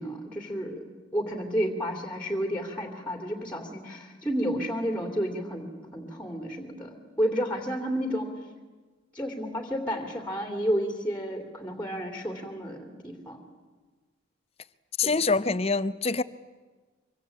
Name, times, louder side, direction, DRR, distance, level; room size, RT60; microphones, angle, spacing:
voice 1, 0.0-8.3 9.1-13.4 15.0-15.1, equal, 5° left, 5 dB, 2.8 m, -31 dB
voice 2, 15.0-16.2, left 4 dB, 30° left, 14 dB, 0.8 m, -25 dB
25.0 x 23.5 x 8.6 m, 1.3 s
head